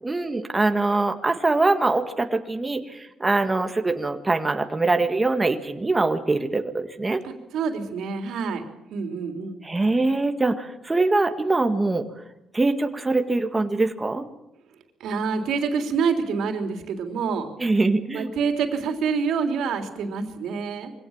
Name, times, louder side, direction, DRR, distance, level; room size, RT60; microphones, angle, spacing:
voice 1, 0.0-7.2 9.6-12.1 12.5-14.2 17.6-18.3, right 2 dB, 20° right, 6 dB, 1.9 m, -23 dB
voice 2, 7.2-8.6 8.9-9.6 15.0-17.5 18.1-20.9, right 5 dB, 80° right, 5 dB, 3.5 m, -27 dB
23.5 x 17.5 x 7.4 m, 0.88 s
cardioid pair, 90°, 0 cm